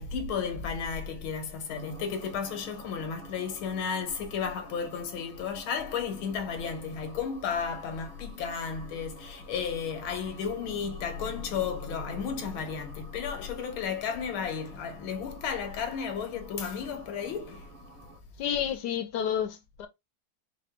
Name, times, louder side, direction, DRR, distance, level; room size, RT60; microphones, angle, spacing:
voice 1, 0.0-17.7, left 6 dB, 90° left, 1.8 m, -33 dB
sound 1, 1.7-18.2, right 4 dB, 30° right, 1.2 m, -50 dB
voice 2, 18.4-19.9, left 9 dB, 70° left, 1.1 m, -30 dB
4.7 x 2.3 x 3.5 m
omnidirectional pair, 2.2 m